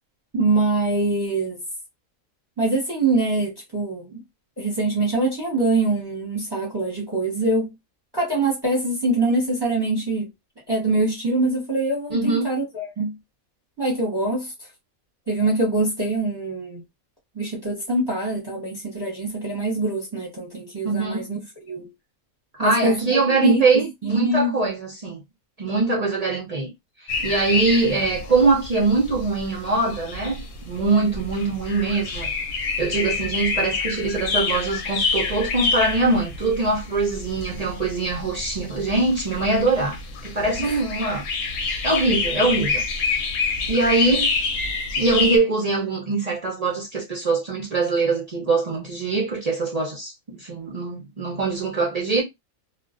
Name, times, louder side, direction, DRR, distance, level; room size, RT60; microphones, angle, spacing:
voice 1, 0.3-1.6 2.6-4.2 4.6-7.7 8.1-10.3 10.7-13.1 13.8-14.5 15.3-16.8 17.3-21.4 21.6-21.9 22.6-23.6 24.0-24.6 40.6-40.8, right 2 dB, 20° right, 0.7 m, -24 dB
voice 2, 12.1-12.5 20.8-21.3 22.6-25.2 25.6-26.7 27.0-32.3 32.6-41.2 41.6-42.8 43.1-43.3 43.7-44.3 45.0-52.2, right 3 dB, 55° right, 0.4 m, -23 dB
sound 1, 27.1-45.4, left 4 dB, 70° left, 0.9 m, -28 dB
2.4 x 2.2 x 2.4 m
omnidirectional pair, 1.5 m